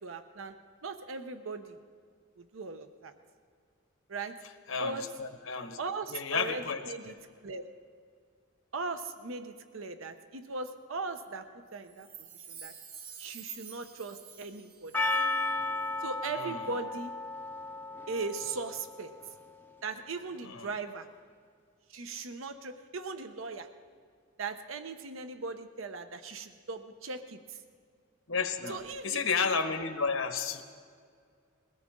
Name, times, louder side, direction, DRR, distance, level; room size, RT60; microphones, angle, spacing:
voice 1, 0.0-0.5 0.8-1.8 2.4-3.1 4.1-4.4 4.8-5.1 5.8-7.1 7.4-7.7 8.7-12.1 12.5-12.7 13.2-14.9 16.0-17.1 18.1-19.1 19.8-21.1 21.9-23.7 24.4-27.6 28.7-29.2, right 3 dB, 80° right, 8 dB, 0.9 m, -38 dB
voice 2, 4.7-5.8 6.1-6.8 16.3-16.7 20.4-20.7 28.3-28.8 29.0-30.6, left 5 dB, 85° left, 7 dB, 1.3 m, -32 dB
Chime, 11.9-15.5 15.8-15.9, right 7 dB, 55° right, 3.2 m, -48 dB
Percussion, 14.9-19.5, left 2 dB, 10° left, 0.6 m, -34 dB
21.5 x 17.0 x 3.8 m, 2.1 s
head